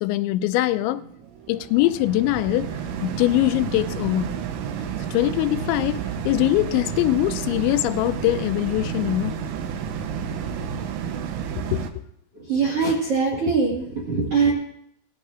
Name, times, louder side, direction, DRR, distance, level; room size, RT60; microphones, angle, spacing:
voice 1, 0.0-1.0 1.5-2.7 3.0-4.3 5.1-9.3 11.5-12.0, left 15 dB, 90° left, 2.9 m, -22 dB
sound 1, 0.7-11.9, right 7 dB, 85° right, 3.2 m, -31 dB
voice 2, 12.5-14.5, right 4 dB, 55° right, 1.7 m, -22 dB
18.0 x 12.5 x 2.5 m
omnidirectional pair, 5.1 m